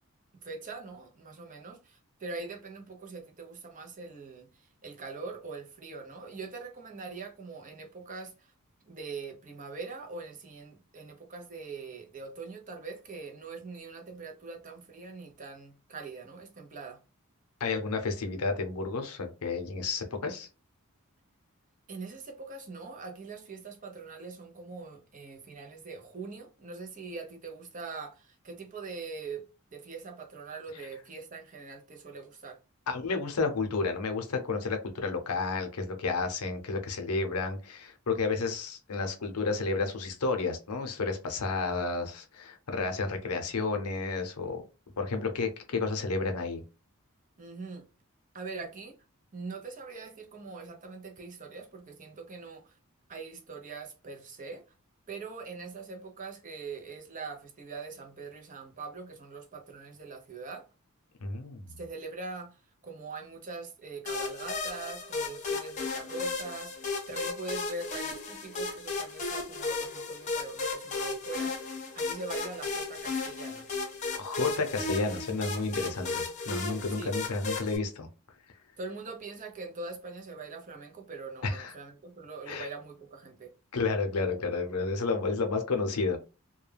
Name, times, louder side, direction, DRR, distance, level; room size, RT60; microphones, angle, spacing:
voice 1, 0.4-8.5 8.9-17.0 21.9-29.4 29.7-32.6 47.4-47.9 48.3-49.0 49.3-52.8 53.1-54.6 55.1-60.7 61.8-71.7 71.9-73.7 77.0-77.1 78.8-83.5, right 4 dB, 35° right, 0.6 m, -42 dB
voice 2, 17.6-20.5 32.9-44.6 45.0-46.6 61.2-61.7 74.1-78.1 81.4-81.7 82.5-82.7 83.7-86.2, left 4 dB, 90° left, 0.6 m, -31 dB
sound 1, 64.1-77.8, left 3 dB, 35° left, 0.6 m, -35 dB
2.3 x 2.2 x 3.2 m
head